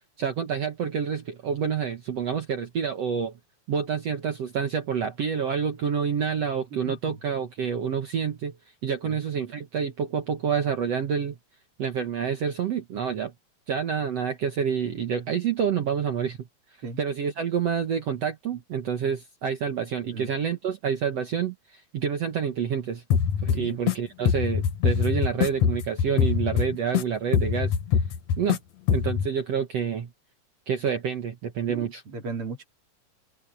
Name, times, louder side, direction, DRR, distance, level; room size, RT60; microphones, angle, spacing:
voice 1, 0.2-3.3 3.7-8.6 8.8-11.4 11.8-13.3 13.7-16.5 17.0-23.0 23.4-27.7 28.4-28.6 28.9-30.1 30.7-32.0, right 7 dB, 65° right, 1.6 m, -28 dB
sound 1, 23.1-23.9 24.2-27.0 27.3-28.6 28.9-29.3, left 7 dB, 70° left, 1.7 m, -23 dB
voice 2, 31.7-32.6, right 4 dB, 35° right, 3.2 m, -35 dB
omnidirectional pair, 4.9 m